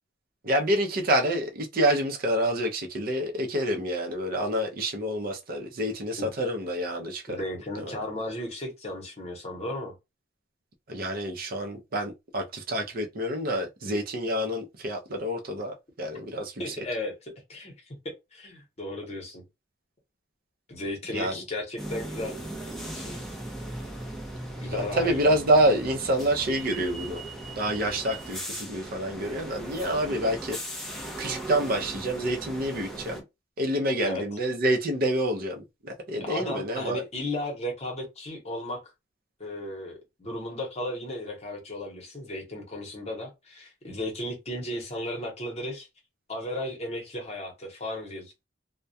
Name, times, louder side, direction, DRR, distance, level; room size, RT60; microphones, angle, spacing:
voice 1, 0.4-7.4 7.8-8.0 10.9-16.8 21.1-21.4 24.7-27.2 27.6-30.6 31.2-33.2 33.6-37.0, right 1 dB, 50° right, 0.6 m, -27 dB
voice 2, 7.3-9.9 16.6-18.0 18.3-19.4 20.7-22.4 22.9-23.2 24.6-25.3 34.0-34.2 36.2-38.8 39.4-45.9 46.3-48.3, left 1 dB, 35° left, 0.9 m, -35 dB
sound 1, 21.8-33.2, right 1 dB, ahead, 0.5 m, -38 dB
2.2 x 2.1 x 2.6 m
head